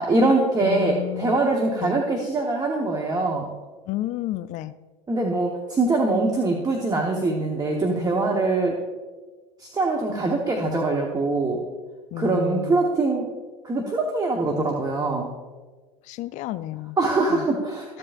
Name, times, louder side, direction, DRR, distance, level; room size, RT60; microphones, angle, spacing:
voice 1, 0.0-3.5 5.1-8.8 9.6-11.6 12.2-13.3 13.6-15.3 17.0-18.0, right 2 dB, 25° right, 1 dB, 1.2 m, -23 dB
voice 2, 0.6-1.4 1.7-2.0 3.9-4.7 12.1-12.9 16.1-17.0 17.3-17.4, left 15 dB, 50° left, 13 dB, 0.4 m, -31 dB
14.0 x 7.5 x 2.5 m, 1.3 s
hypercardioid pair, 90°, 16 cm